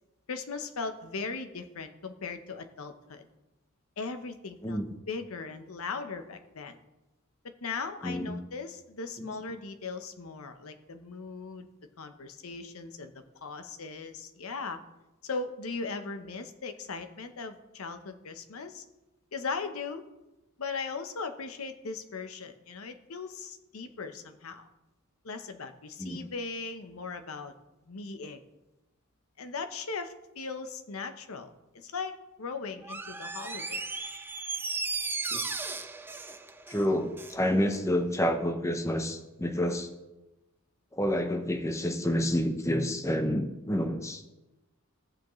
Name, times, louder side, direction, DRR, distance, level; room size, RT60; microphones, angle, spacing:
voice 1, 0.3-3.2 4.0-4.8 5.1-6.8 7.6-11.7 12.0-14.8 15.2-18.8 19.3-20.0 20.6-24.7 25.2-27.5 27.9-28.4 29.4-32.1 32.4-33.8, left 4 dB, 85° left, 7 dB, 0.8 m, -38 dB
Door, 32.8-37.4 37.7-37.8, right 3 dB, 10° right, 0.4 m, -36 dB
voice 2, 36.7-39.9 41.0-44.2, equal, 15° left, 5 dB, 0.7 m, -29 dB
14.5 x 7.2 x 3.1 m, 1.0 s
head